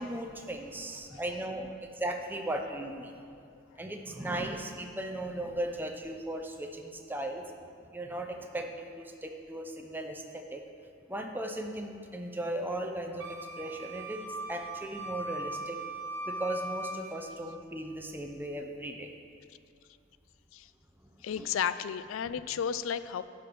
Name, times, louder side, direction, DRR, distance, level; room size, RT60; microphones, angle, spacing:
voice 1, 0.0-3.1 3.8-7.5 7.9-10.6 11.1-15.8 16.3-19.1 21.0-21.5, right 1 dB, 10° right, 3 dB, 0.6 m, -37 dB
Wind instrument woodwind instrument, 13.2-17.3, right 2 dB, 60° right, 1.2 m, -39 dB
voice 2, 21.2-23.2, left 8 dB, 75° left, 14 dB, 0.3 m, -33 dB
11.5 x 5.0 x 6.1 m, 2.4 s
head